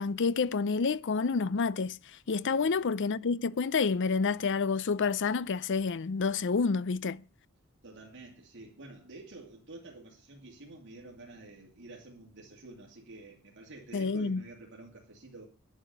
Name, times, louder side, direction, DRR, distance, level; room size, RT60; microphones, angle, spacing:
voice 1, 0.0-7.2 13.9-14.4, left 4 dB, 55° left, 0.5 m, -29 dB
voice 2, 7.8-15.4, right 2 dB, 55° right, 2.4 m, -49 dB
11.0 x 7.0 x 9.2 m
head